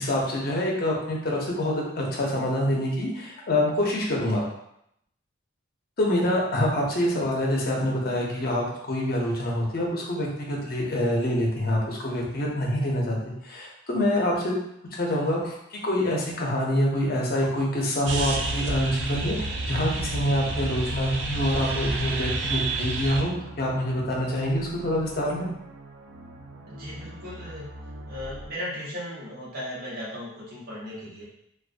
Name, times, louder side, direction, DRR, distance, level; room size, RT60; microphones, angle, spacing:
voice 1, 0.0-4.5 6.0-13.2 13.4-14.5 14.9-15.5 15.8-25.5, left 1 dB, 50° left, -2 dB, 0.6 m, -26 dB
sound 1, 18.1-28.5, right 3 dB, 65° right, 0.3 m, -32 dB
voice 2, 26.7-27.7 28.1-31.2, left 1 dB, 50° right, -7 dB, 0.9 m, -36 dB
2.4 x 2.3 x 2.4 m, 0.76 s
head